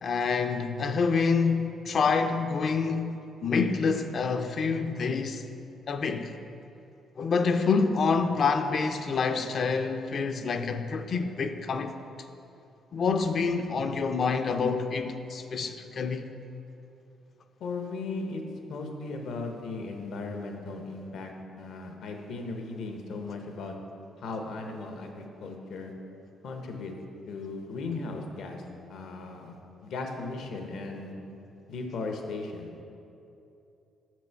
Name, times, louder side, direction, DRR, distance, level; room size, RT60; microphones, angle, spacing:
voice 1, 0.0-5.4 5.9-6.3 7.2-11.9 12.9-16.2, left 5 dB, 50° left, 0.5 m, -27 dB
voice 2, 17.6-18.4 18.7-21.3 21.6-23.7 24.2-25.9 26.4-26.9 27.3-28.6 28.9-31.1 31.7-32.7, left 3 dB, 75° left, 0.8 m, -37 dB
6.2 x 6.1 x 4.5 m
cardioid pair, 90°, 0 cm